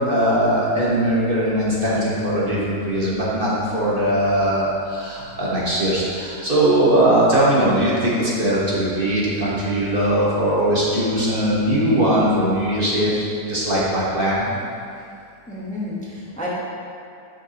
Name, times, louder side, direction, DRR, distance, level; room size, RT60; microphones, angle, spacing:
voice 1, 0.0-14.5, right 1 dB, 35° right, -7 dB, 1.5 m, -20 dB
voice 2, 15.5-16.5, left 1 dB, 5° left, -7 dB, 1.0 m, -31 dB
11.0 x 6.0 x 2.9 m, 2.5 s
omnidirectional pair, 1.7 m